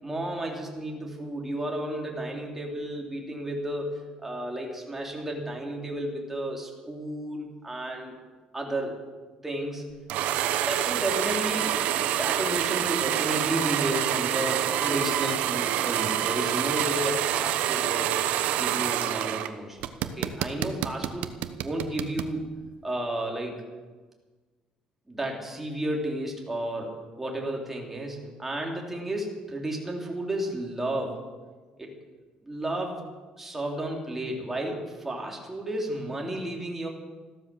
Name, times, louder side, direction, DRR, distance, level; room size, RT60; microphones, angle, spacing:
voice 1, 0.0-8.2 8.5-9.0 9.4-9.9 10.7-11.7 12.2-18.1 18.5-21.3 21.6-22.5 22.8-23.6 25.1-31.2 31.8-31.9 32.4-33.0 33.4-36.9, right 1 dB, 10° right, 0 dB, 3.5 m, -32 dB
sound 1, 10.1-19.5 19.8-22.3, right 11 dB, 80° right, 1.0 m, -27 dB
15.0 x 12.5 x 7.2 m, 1.3 s
cardioid pair, 125°, 2 cm